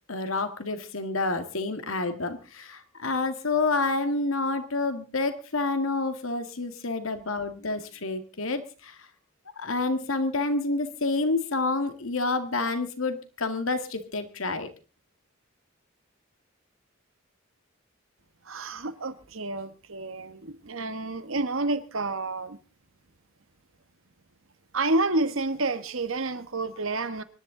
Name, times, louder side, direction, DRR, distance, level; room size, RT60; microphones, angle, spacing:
voice 1, 0.1-9.0 9.6-14.7, left 3 dB, 80° left, 2.0 m, -28 dB
voice 2, 18.4-22.6 24.7-27.2, right 2 dB, 80° right, 1.4 m, -29 dB
24.5 x 11.0 x 3.8 m
head